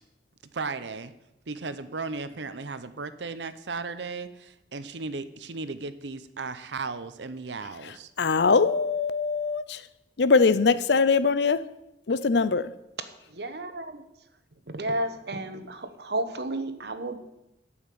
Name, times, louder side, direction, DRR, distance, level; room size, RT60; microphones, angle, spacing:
voice 1, 0.5-1.1 1.5-8.1, right 4 dB, 80° right, 12 dB, 0.8 m, -35 dB
voice 2, 8.2-9.8 10.2-11.6 12.1-12.7, left 4 dB, 75° left, 15 dB, 0.6 m, -22 dB
voice 3, 13.3-14.0 14.7-17.2, right 1 dB, 65° right, 9 dB, 1.2 m, -32 dB
12.0 x 5.8 x 8.5 m, 0.88 s
head